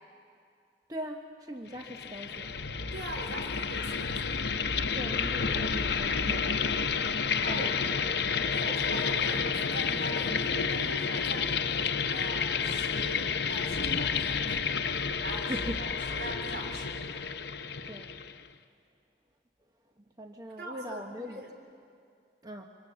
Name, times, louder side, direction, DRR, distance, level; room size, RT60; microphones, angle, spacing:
voice 1, 0.9-2.5 4.9-6.8 7.5-8.0 15.5-15.8 17.9-18.1 20.2-21.4 22.4-22.7, equal, 20° right, 3 dB, 0.9 m, -40 dB
sound 1, 1.8-18.5, left 6 dB, 70° left, 0.8 m, -30 dB
voice 2, 2.9-4.4 7.4-7.8 8.5-11.6 12.1-14.6 14.9-17.4 20.6-21.5, right 1 dB, 75° right, 2 dB, 4.0 m, -42 dB
26.5 x 24.5 x 7.3 m, 2.3 s
head